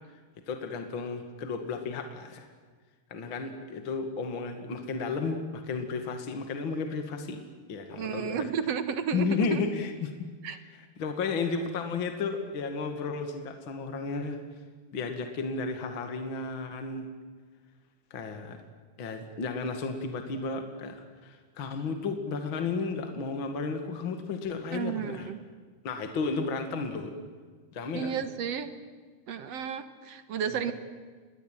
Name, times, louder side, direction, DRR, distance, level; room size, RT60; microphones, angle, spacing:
voice 1, 0.5-2.5 3.1-7.4 7.7-8.5 9.1-14.4 14.9-17.0 18.1-18.6 19.0-25.3 25.8-27.1 27.7-28.2 30.5-30.7, left 4 dB, 40° left, 6 dB, 2.6 m, -33 dB
voice 2, 8.0-9.6 10.4-10.6 24.7-25.4 27.9-28.7 29.3-30.7, right 7 dB, 60° right, 11 dB, 2.2 m, -32 dB
27.5 x 21.5 x 9.2 m, 1.5 s
omnidirectional pair, 3.7 m